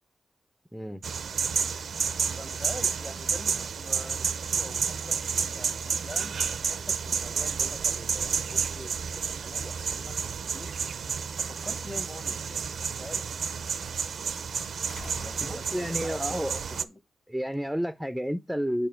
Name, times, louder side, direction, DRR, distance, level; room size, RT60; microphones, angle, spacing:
sound 1, 1.0-16.8, right 6 dB, 75° right, 0.5 m, -30 dB
voice 1, 2.4-10.2 10.5-10.7 11.4-13.8 14.9-17.0, left 1 dB, 20° left, 1.0 m, -45 dB
sound 2, 14.9-16.2 17.5-17.6, left 4 dB, 65° left, 0.5 m, -48 dB
voice 2, 15.4-16.5 17.3-18.9, equal, ahead, 0.5 m, -30 dB
7.0 x 5.5 x 4.4 m
cardioid pair, 85°, 0 cm